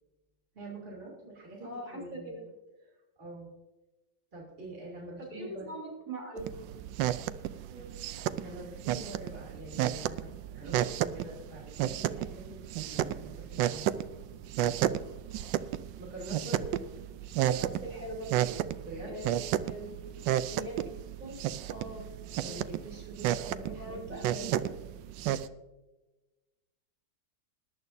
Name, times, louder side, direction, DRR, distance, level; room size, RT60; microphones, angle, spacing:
voice 1, 0.5-2.4 2.8-3.5 4.3-5.8 8.3-13.9 14.2-14.7 16.0-16.8 18.8-19.1 22.4-24.7, right 1 dB, 30° right, -4 dB, 3.1 m, -45 dB
voice 2, 1.6-2.4 5.2-6.6 7.7-7.9 17.4-18.6 19.1-19.3 19.6-20.9 21.2-21.4 21.7-22.0 22.4-22.7 23.7-24.7, right 1 dB, 50° right, -3 dB, 3.9 m, -42 dB
sound 1, 6.4-25.5, right 12 dB, 90° right, 1.3 m, -33 dB
21.0 x 11.0 x 2.7 m, 1.1 s
omnidirectional pair, 1.9 m